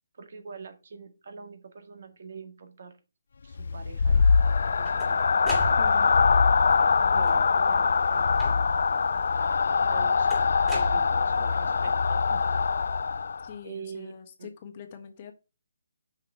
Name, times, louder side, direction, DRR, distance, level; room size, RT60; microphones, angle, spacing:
voice 1, 0.2-3.0 3.4-5.3 5.6-5.8 7.1-8.4 9.4-9.5 9.8-10.3 10.7-12.4 13.6-14.5, right 5 dB, 55° right, 7 dB, 1.8 m, -44 dB
sound 1, 3.5-13.5, left 5 dB, 65° left, 0.3 m, -23 dB
sound 2, 4.4-6.3 7.1-7.7 8.4-8.9 10.3-11.6, equal, 5° right, 2.4 m, -37 dB
voice 2, 5.8-6.1 13.4-15.3, left 7 dB, 30° left, 6 dB, 1.3 m, -43 dB
6.4 x 5.8 x 4.5 m, 0.29 s
hypercardioid pair, 160°, 0 cm